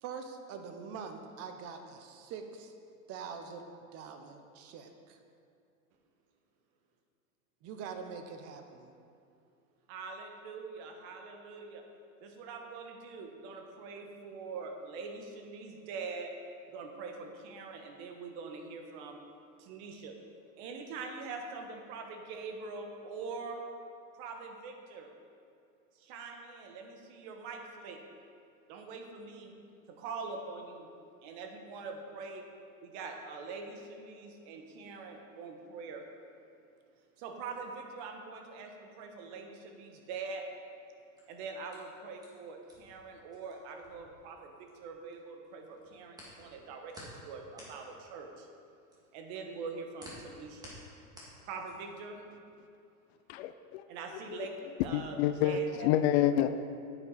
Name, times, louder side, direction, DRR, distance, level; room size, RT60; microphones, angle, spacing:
voice 1, 0.0-2.7 3.1-5.2 7.6-8.9, right 6 dB, 35° right, 6 dB, 0.8 m, -44 dB
voice 2, 9.9-11.8 12.2-16.3 16.7-19.2 19.6-20.2 20.6-23.7 24.2-25.1 25.9-28.0 28.7-29.5 29.9-30.9 31.2-32.4 32.8-36.1 37.2-40.5 41.3-48.5 49.1-50.7 51.5-52.2 53.9-54.5 54.8-55.9, right 4 dB, 50° right, 4 dB, 1.3 m, -43 dB
sound 1, 41.2-45.1 45.4-52.0, equal, 10° right, 2.0 m, -53 dB
voice 3, 53.3-53.8 54.9-56.5, left 10 dB, 50° left, 10 dB, 0.5 m, -28 dB
9.5 x 8.8 x 4.1 m, 2.5 s
supercardioid pair, 140°, 42 cm